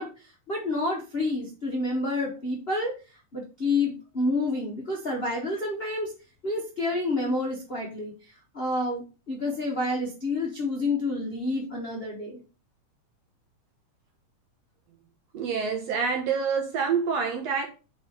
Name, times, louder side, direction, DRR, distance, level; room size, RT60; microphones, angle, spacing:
voice 1, 0.0-2.9 3.3-6.1 6.4-12.4, left 2 dB, 80° left, 0.5 m, -29 dB
voice 2, 15.3-17.7, right 6 dB, 65° right, 2.0 m, -27 dB
5.3 x 4.2 x 5.2 m
omnidirectional pair, 3.4 m